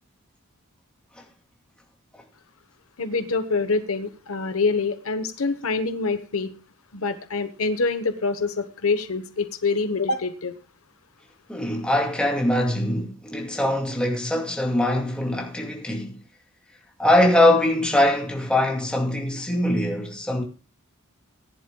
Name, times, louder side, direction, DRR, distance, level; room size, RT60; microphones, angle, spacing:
voice 1, 3.0-6.5 6.9-10.5, left 4 dB, 75° left, 1.1 m, -25 dB
voice 2, 11.5-16.2 17.0-20.4, left 1 dB, 5° left, 2.3 m, -22 dB
19.0 x 10.5 x 2.3 m
head